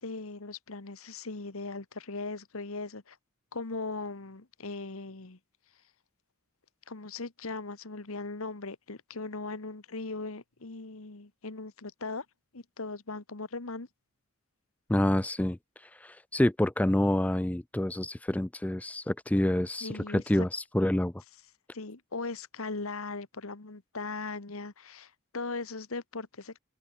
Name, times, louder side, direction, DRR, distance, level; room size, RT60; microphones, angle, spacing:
voice 1, 0.0-3.2 3.5-5.4 6.9-12.2 12.5-13.9 19.8-20.5 21.7-26.6, left 3 dB, 75° left, 1.5 m, -39 dB
voice 2, 14.9-21.1, left 1 dB, 5° left, 0.3 m, -28 dB
open air
head